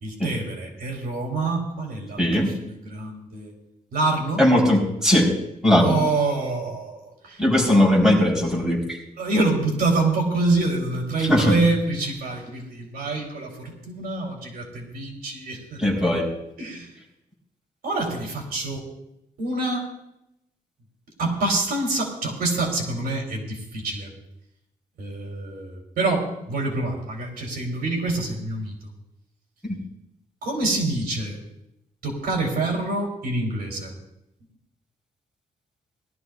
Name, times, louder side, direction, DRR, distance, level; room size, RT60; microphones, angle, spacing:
voice 1, 0.0-3.5 3.9-4.4 5.7-7.4 9.2-16.1 16.6-16.9 17.8-18.8 19.4-19.9 21.2-24.1 25.0-28.7 30.4-31.4 32.0-33.9, right 2 dB, 85° right, 0 dB, 3.6 m, -26 dB
voice 2, 2.2-2.5 4.4-5.3 5.6-5.9 7.4-9.0 11.3-11.5 15.8-16.3 29.6-29.7, left 1 dB, 5° right, -4 dB, 4.2 m, -19 dB
20.5 x 13.0 x 2.5 m, 0.84 s
wide cardioid pair, 180°, 16 cm